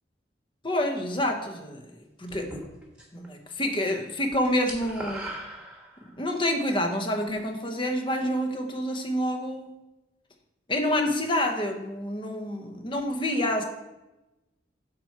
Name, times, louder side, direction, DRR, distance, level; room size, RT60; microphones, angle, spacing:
voice 1, 0.6-2.6 3.1-5.3 6.2-9.8 10.7-13.6, left 1 dB, 25° left, 4 dB, 0.9 m, -28 dB
sound 1, 2.3-3.3 3.6-3.9 4.2-6.3, right 1 dB, 5° right, 1.2 m, -39 dB
7.5 x 4.5 x 6.0 m, 0.98 s
head